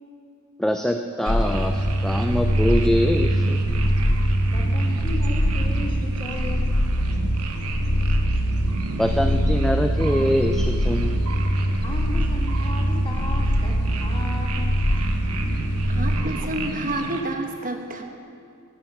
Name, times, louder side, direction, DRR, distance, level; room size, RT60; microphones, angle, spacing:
voice 1, 0.6-3.6 9.0-11.2, equal, ahead, 5 dB, 0.3 m, -24 dB
sound 1, 1.2-17.2, right 3 dB, 85° right, 1.1 m, -34 dB
sound 2, 1.3-16.2, equal, 70° left, 1.4 m, -23 dB
voice 2, 4.5-6.8 11.8-13.7 14.0-14.7, left 1 dB, 25° left, 1 dB, 1.4 m, -35 dB
voice 3, 15.9-18.0, right 1 dB, 40° right, 4 dB, 1.0 m, -29 dB
10.5 x 9.6 x 7.0 m, 2.4 s
head